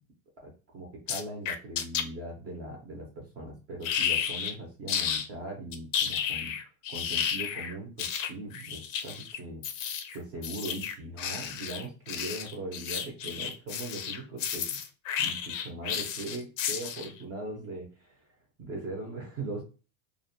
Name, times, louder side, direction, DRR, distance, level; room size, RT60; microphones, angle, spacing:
voice 1, 0.4-6.6 6.9-9.6 10.1-14.8 15.2-18.3 18.6-19.6, right 2 dB, 25° right, -1 dB, 0.4 m, -40 dB
sound 1, 1.1-2.0 3.8-4.5 4.9-5.3 5.7-17.2, left 8 dB, 90° left, 0.5 m, -32 dB
2.4 x 2.1 x 2.5 m, 0.33 s
supercardioid pair, 160°, 38 cm